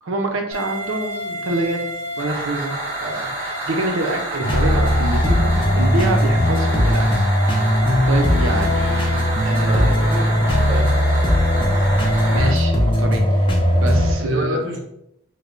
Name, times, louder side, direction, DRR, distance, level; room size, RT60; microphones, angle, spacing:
voice 1, 0.0-1.8 2.2-7.1 8.1-10.0 10.3-10.5 12.2-13.5 13.7-14.6, right 2 dB, 85° right, 3 dB, 0.7 m, -26 dB
sound 1, 0.5-12.5, right 1 dB, 10° right, 0.9 m, -29 dB
sound 2, 4.4-14.2, equal, 25° left, 0.6 m, -18 dB
voice 2, 9.7-11.0 14.2-14.8, right 1 dB, 55° right, -2 dB, 1.0 m, -28 dB
3.2 x 2.2 x 3.8 m, 0.76 s
head